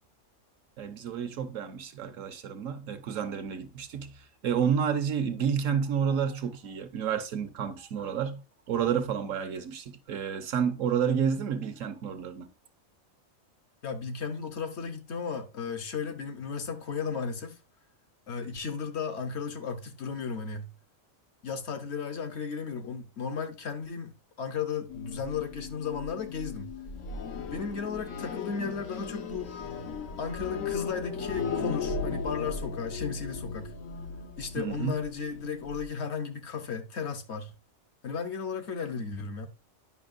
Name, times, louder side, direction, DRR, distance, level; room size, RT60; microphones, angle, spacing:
voice 1, 0.8-8.4 8.7-12.5 34.5-34.9, right 7 dB, 75° right, 1.2 m, -30 dB
voice 2, 13.8-17.6 18.3-20.7 21.4-26.7 27.5-29.5 30.2-33.7 34.4-37.5 38.0-39.5, left 5 dB, 60° left, 1.0 m, -35 dB
sound 1, 24.9-35.9, left 5 dB, 75° left, 1.3 m, -37 dB
9.6 x 5.5 x 2.5 m
omnidirectional pair, 1.4 m